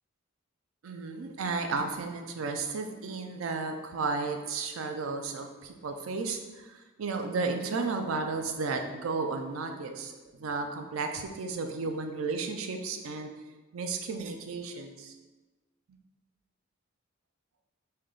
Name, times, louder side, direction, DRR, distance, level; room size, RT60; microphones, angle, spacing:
voice 1, 0.8-13.3 13.7-15.1, right 4 dB, 85° right, 5 dB, 0.4 m, -33 dB
3.4 x 2.7 x 3.8 m, 1.2 s
head